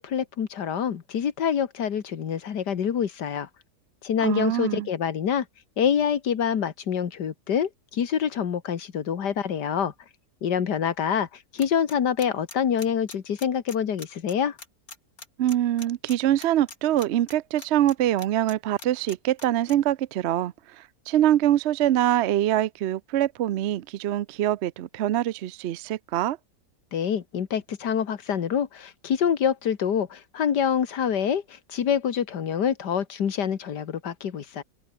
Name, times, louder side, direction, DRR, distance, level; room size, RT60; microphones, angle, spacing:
voice 1, 0.0-3.5 4.0-5.5 5.8-9.9 10.4-11.3 11.5-14.6 26.9-34.6, left 8 dB, 75° left, 2.1 m, -26 dB
voice 2, 4.2-4.9 15.4-26.4, right 12 dB, 70° right, 0.6 m, -24 dB
sound 1, 11.6-18.5 18.8-19.7, left 3 dB, 55° left, 4.2 m, -42 dB
omnidirectional pair, 1.8 m